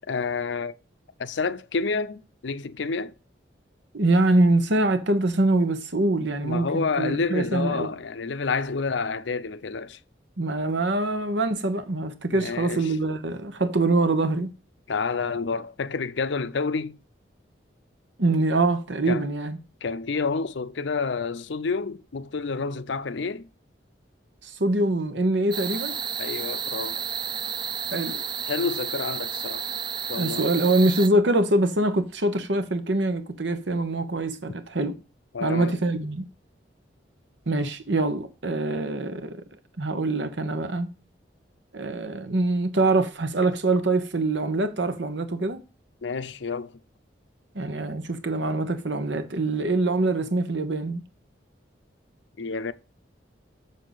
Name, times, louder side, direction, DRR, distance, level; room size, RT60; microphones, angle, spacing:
voice 1, 0.1-0.7 1.2-3.1 6.4-10.0 12.3-12.9 14.9-17.0 19.1-19.3 19.8-23.5 26.2-27.0 28.1-29.6 30.1-30.5 35.3-35.8 46.0-46.7 52.4-52.7, left 4 dB, 80° left, 0.6 m, -29 dB
voice 2, 3.9-7.9 10.4-14.5 18.2-19.6 24.4-26.0 27.9-28.2 30.1-35.0 35.4-36.3 37.5-39.4 39.8-40.9 41.7-45.6 47.5-51.0, right 2 dB, 75° right, 1.1 m, -24 dB
sound 1, 25.5-31.1, right 7 dB, 25° right, 0.3 m, -31 dB
7.0 x 6.5 x 4.0 m
head